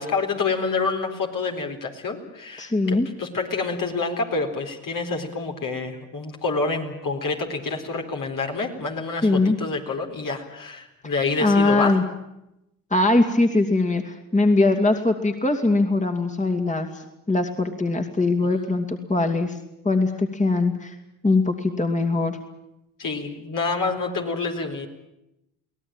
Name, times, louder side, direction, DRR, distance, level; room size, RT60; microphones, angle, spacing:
voice 1, 0.0-12.0 23.0-24.9, left 4 dB, 55° left, 2 dB, 4.2 m, -27 dB
voice 2, 2.6-3.1 9.2-9.6 11.0-11.1 11.4-12.0 12.9-19.6 19.8-20.9 21.2-22.4, left 2 dB, 20° left, 4 dB, 2.7 m, -21 dB
24.0 x 17.5 x 9.0 m, 0.87 s
hypercardioid pair, 50°, 38 cm